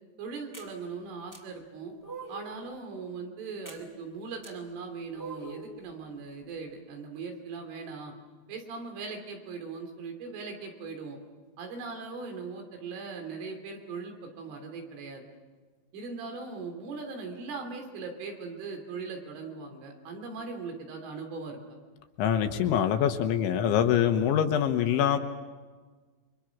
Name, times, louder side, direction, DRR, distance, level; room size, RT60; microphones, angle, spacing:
voice 1, 0.2-1.9 2.3-8.1 8.5-11.2 11.6-15.3 15.9-21.8, right 4 dB, 75° right, 3 dB, 5.6 m, -39 dB
sound 1, 0.5-0.7 1.3-1.4 2.0-2.6 3.7-3.8 4.4-4.5 5.1-5.7, right 4 dB, 5° right, 2.1 m, -42 dB
voice 2, 22.2-25.2, left 9 dB, 75° left, 6 dB, 3.3 m, -24 dB
29.0 x 25.0 x 6.0 m, 1.4 s
omnidirectional pair, 5.8 m